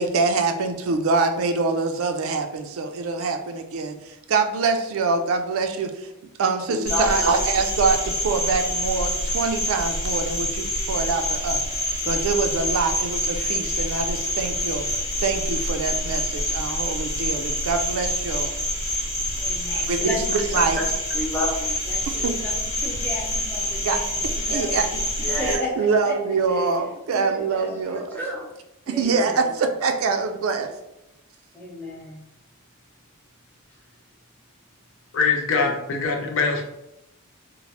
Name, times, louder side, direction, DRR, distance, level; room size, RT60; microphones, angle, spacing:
voice 1, 0.0-6.1 6.4-14.9 15.2-18.5 19.7-20.8 22.1-22.4 23.8-24.0 24.5-25.0 25.5-28.2 28.9-30.7, right 4 dB, 70° right, 6 dB, 0.3 m, -25 dB
voice 2, 6.7-7.3 19.4-25.8 26.0-28.4 28.9-29.5 31.5-32.2 35.6-35.7, left 1 dB, 10° left, -4 dB, 0.7 m, -32 dB
Cricket, 6.9-25.6, left 1 dB, 85° left, 1.1 m, -26 dB
voice 3, 35.1-36.6, left 4 dB, 60° left, 2 dB, 0.5 m, -23 dB
3.1 x 2.0 x 2.8 m, 0.88 s
head